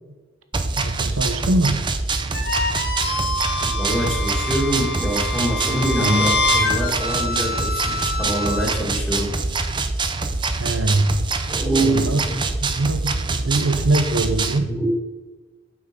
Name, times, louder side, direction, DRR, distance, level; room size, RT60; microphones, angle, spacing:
sound 1, 0.5-14.6, right 3 dB, 25° right, 0.6 m, -25 dB
voice 1, 0.8-1.8 10.6-11.2 11.8-12.2 12.6-14.7, right 2 dB, 85° right, 9 dB, 0.7 m, -22 dB
sound 2, 2.3-8.7, left 2 dB, 50° left, 1.2 m, -25 dB
voice 2, 3.6-9.3 11.5-12.4 14.7-15.0, right 1 dB, ahead, -6 dB, 1.8 m, -24 dB
8.5 x 6.0 x 5.1 m, 1.3 s
head